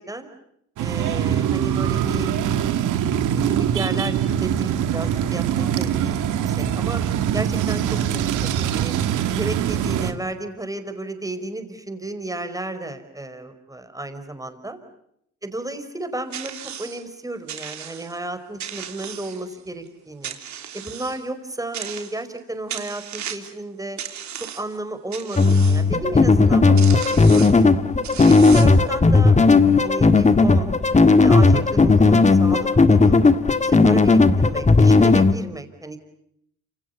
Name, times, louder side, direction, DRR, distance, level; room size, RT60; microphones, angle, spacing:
voice 1, 0.8-2.9 3.3-7.0 7.3-7.8 8.1-8.9 9.2-14.8 15.4-20.4 20.7-24.0 24.4-27.7 28.3-29.3 29.7-30.8 31.2-33.3 33.6-36.0, right 2 dB, 10° right, 8 dB, 5.1 m, -33 dB
sound 1, 0.8-10.1, right 9 dB, 90° right, 2.4 m, -23 dB
sound 2, 16.3-17.0 17.5-18.2 18.6-19.7 20.2-21.2 21.7-22.4 22.7-23.6 24.0-24.8 25.1-25.8 26.5-26.6 26.8-27.6 28.0-28.9, right 9 dB, 70° right, 3.5 m, -35 dB
sound 3, 25.4-35.3, left 3 dB, 25° left, 1.7 m, -15 dB
28.5 x 27.0 x 7.0 m, 0.74 s
cardioid pair, 90°, 30 cm